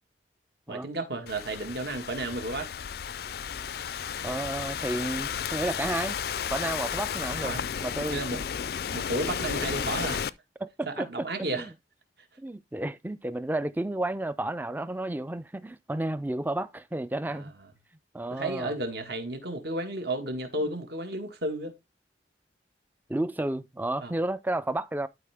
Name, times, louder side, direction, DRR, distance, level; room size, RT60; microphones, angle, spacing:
voice 1, 0.7-2.7 7.4-7.6 8.1-10.2 10.9-11.7 17.3-17.5 18.3-21.7 24.0-24.1, right 2 dB, 60° right, 1.7 m, -33 dB
Thunderstorm / Rain, 1.3-10.3, left 7 dB, 55° left, 0.4 m, -33 dB
voice 2, 4.2-6.2 6.5-7.5 7.8-8.4 10.0-10.2 10.6-11.7 12.4-17.5 18.1-18.7 23.1-25.1, right 1 dB, 10° right, 0.4 m, -32 dB
12.0 x 4.6 x 3.5 m
head